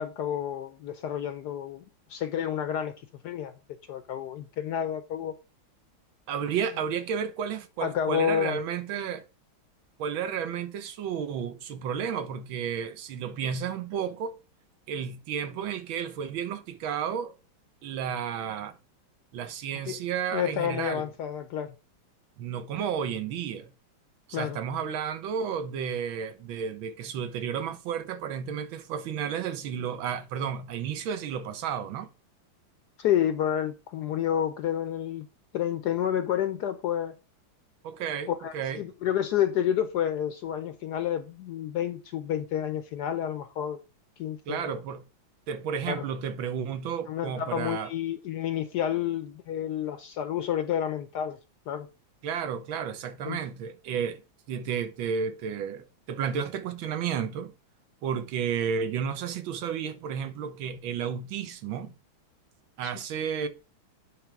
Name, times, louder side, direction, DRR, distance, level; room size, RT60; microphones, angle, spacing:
voice 1, 0.0-1.8 2.1-2.9 3.2-3.5 3.9-5.3 7.8-8.6 19.9-20.0 20.3-21.7 24.3-24.6 33.0-35.3 35.5-37.1 38.3-43.8 44.2-44.8 45.9-46.0 47.1-51.4 51.7-51.9 53.2-53.4 62.8-62.9, left 10 dB, 70° left, 1.0 m, -29 dB
voice 2, 6.3-9.2 10.0-14.4 14.9-17.3 17.8-18.8 19.3-21.0 22.4-23.7 24.3-32.1 37.8-38.8 44.5-45.0 45.5-47.9 52.2-54.2 54.5-57.5 58.0-61.9 62.8-63.5, right 7 dB, 80° right, 1.7 m, -32 dB
9.4 x 3.4 x 5.8 m
omnidirectional pair, 2.2 m